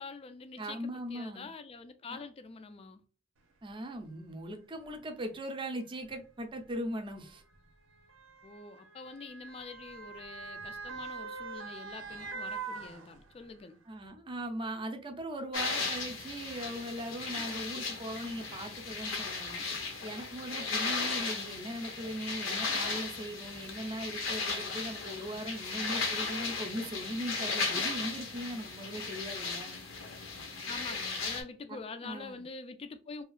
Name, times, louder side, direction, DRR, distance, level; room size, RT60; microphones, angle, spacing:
voice 1, 0.0-0.8 1.1-3.0 8.4-13.8 30.7-33.2, left 4 dB, 30° left, 0.3 m, -45 dB
voice 2, 0.6-1.5 2.1-2.2 3.6-7.4 13.9-19.7 20.0-29.8 31.7-32.4, right 1 dB, 25° right, 0.5 m, -39 dB
Motor vehicle (road) / Siren, 3.7-3.8 4.7-4.9 6.0-13.6 14.1-14.2, right 4 dB, 85° right, 0.6 m, -44 dB
sound 1, 15.5-31.4, left 4 dB, 85° left, 0.8 m, -36 dB
2.8 x 2.3 x 2.3 m
head